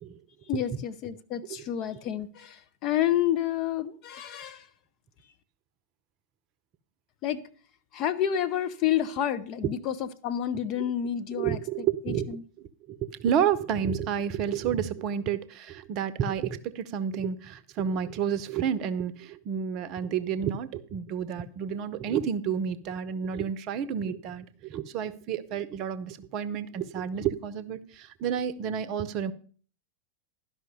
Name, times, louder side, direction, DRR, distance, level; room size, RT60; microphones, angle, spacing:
voice 1, 0.5-2.5 2.8-4.6 7.2-7.4 7.9-12.4, left 10 dB, 40° left, 0.9 m, -29 dB
voice 2, 11.3-29.3, right 8 dB, 40° right, 0.7 m, -30 dB
12.0 x 5.7 x 6.8 m
figure-of-eight pair, 90°, 0 cm